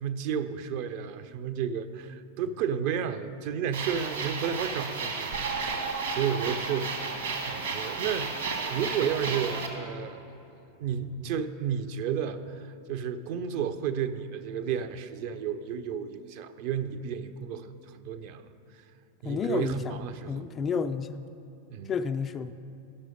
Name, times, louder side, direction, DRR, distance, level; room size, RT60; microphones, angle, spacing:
voice 1, 0.0-7.1 7.4-10.2 10.8-18.5 19.2-20.5 21.7-21.9, right 8 dB, 45° right, 10 dB, 0.5 m, -32 dB
sound 1, 3.7-9.7, right 4 dB, 65° right, 1.3 m, -33 dB
voice 2, 19.2-19.9 20.3-21.2 21.9-22.5, left 6 dB, 25° left, 9 dB, 0.3 m, -30 dB
12.5 x 6.1 x 5.2 m, 2.9 s
figure-of-eight pair, 90°, 0 cm